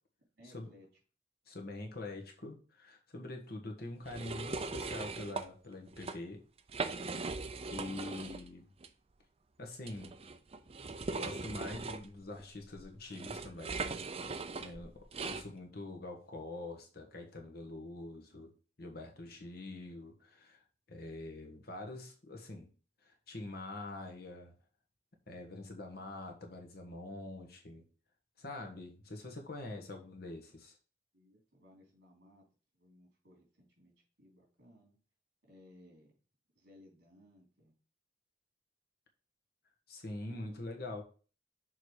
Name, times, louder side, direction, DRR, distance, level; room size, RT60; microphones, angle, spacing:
voice 1, 0.4-0.9 18.9-19.4 31.1-32.4 32.7-35.0 35.4-36.1 36.6-37.7 40.3-40.7, left 1 dB, 65° right, -1 dB, 3.7 m, -61 dB
voice 2, 1.5-6.4 7.7-8.7 9.6-10.1 11.2-14.0 14.6-18.5 18.8-20.6 20.9-22.7 23.0-24.5 25.3-27.8 28.4-30.8 39.9-41.0, left 2 dB, 55° left, 2 dB, 1.5 m, -45 dB
sound 1, 4.1-5.5 5.9-6.2 6.6-8.5 8.8-8.9 9.8-15.5, right 3 dB, 35° right, 0.5 m, -40 dB
6.5 x 4.0 x 4.9 m, 0.37 s
head